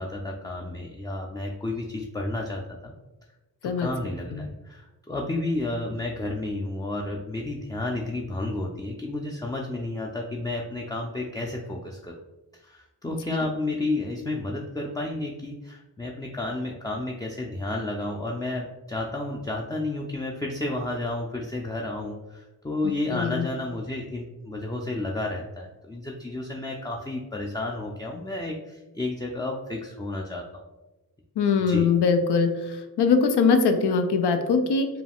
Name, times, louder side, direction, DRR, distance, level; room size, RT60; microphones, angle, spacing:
voice 1, 0.0-2.9 3.6-12.2 12.6-30.6 31.7-31.9, left 2 dB, 10° left, -1 dB, 0.3 m, -31 dB
voice 2, 13.1-13.5 23.1-23.5 31.4-34.9, left 5 dB, 80° left, 7 dB, 0.6 m, -22 dB
4.7 x 2.3 x 3.4 m, 1.1 s
cardioid pair, 65°, 39 cm